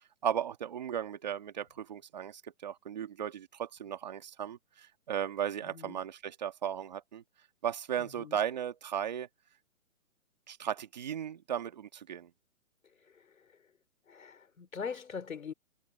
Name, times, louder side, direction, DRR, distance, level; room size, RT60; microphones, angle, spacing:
voice 1, 0.2-7.2 7.6-9.3 10.5-12.3, right 9 dB, 30° right, 1.9 m, -36 dB
voice 2, 5.6-6.0 8.0-8.4 12.8-13.6 14.1-15.5, left 6 dB, 75° left, 4.4 m, -43 dB
hypercardioid pair, 175°, 42 cm